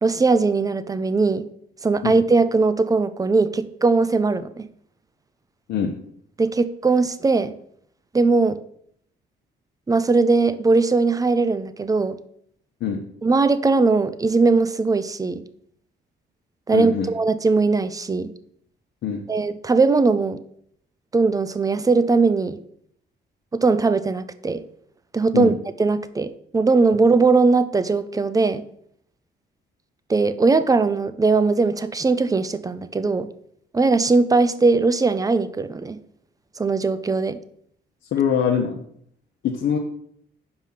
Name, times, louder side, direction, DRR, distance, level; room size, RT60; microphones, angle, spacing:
voice 1, 0.0-1.5 1.8-4.7 6.4-7.5 8.1-8.6 9.9-12.2 13.2-15.4 16.7-18.3 19.3-20.4 21.1-22.6 23.5-24.6 25.1-25.5 25.8-28.6 30.1-33.3 33.7-36.0 36.6-37.4, right 3 dB, 20° right, 13 dB, 0.5 m, -19 dB
voice 2, 16.7-17.1 19.0-19.2 25.3-25.5 38.1-38.8 39.4-39.8, left 7 dB, 70° left, 0 dB, 0.9 m, -23 dB
5.6 x 4.8 x 5.7 m, 0.67 s
cardioid pair, 90°, 20 cm